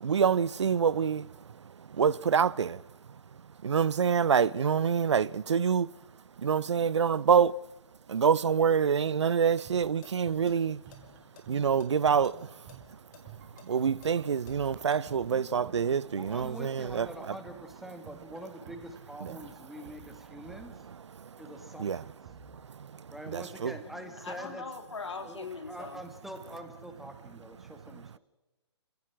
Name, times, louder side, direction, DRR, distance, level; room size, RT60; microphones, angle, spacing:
voice 1, 0.0-1.3 2.0-2.8 3.6-5.9 6.4-7.5 8.1-10.8 11.5-12.4 13.7-17.1 21.8-22.0 23.3-23.7, right 7 dB, 80° right, 0.6 m, -26 dB
sound 1, 9.6-9.7 10.0-10.1 10.5-11.9 12.2-12.3 12.7-15.0, left 9 dB, 40° left, 4.0 m, -53 dB
sound 2, 9.7-21.4 22.2-22.9, right 7 dB, 40° right, 5.0 m, -53 dB
voice 2, 15.3-15.7 16.1-20.7 21.4-22.1 23.1-24.6 25.2-28.2, equal, ahead, 2.0 m, -45 dB
voice 3, 23.8-26.0 27.9-28.2, left 4 dB, 85° left, 3.3 m, -41 dB
25.5 x 16.5 x 6.2 m
hypercardioid pair, 135°, 15 cm